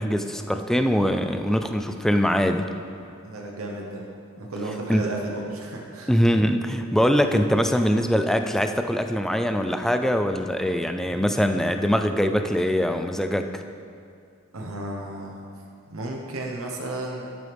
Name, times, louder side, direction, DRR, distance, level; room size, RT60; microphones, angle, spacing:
voice 1, 0.0-2.7 4.9-5.1 6.1-13.6, equal, ahead, 6 dB, 0.4 m, -22 dB
voice 2, 3.2-4.1 4.4-6.1 14.5-15.5 15.9-17.2, right 2 dB, 75° right, -1 dB, 1.1 m, -33 dB
11.0 x 9.3 x 3.5 m, 2.4 s
head